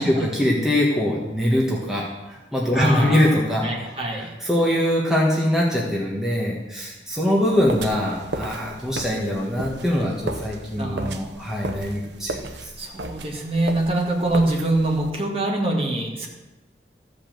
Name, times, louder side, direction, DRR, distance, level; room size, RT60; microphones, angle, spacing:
voice 1, 0.0-3.6 4.1-12.7, left 1 dB, 5° right, -4 dB, 1.4 m, -23 dB
voice 2, 2.7-4.3 10.8-11.1 12.8-16.3, right 1 dB, 30° right, -1 dB, 1.9 m, -24 dB
sound 1, 7.7-15.1, right 2 dB, 75° right, 0.9 m, -35 dB
14.0 x 5.2 x 7.7 m, 1.1 s
head